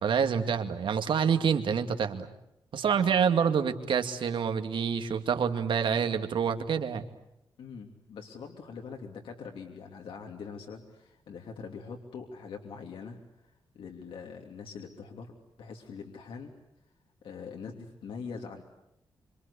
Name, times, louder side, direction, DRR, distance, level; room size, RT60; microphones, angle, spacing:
voice 1, 0.0-2.3 2.7-7.1, right 7 dB, 70° right, 7 dB, 2.3 m, -27 dB
voice 2, 7.6-13.2 13.7-15.3 15.6-16.5 17.2-18.6, left 5 dB, 85° left, 2 dB, 2.9 m, -43 dB
26.5 x 26.0 x 8.4 m, 0.81 s
wide cardioid pair, 125°, 9 cm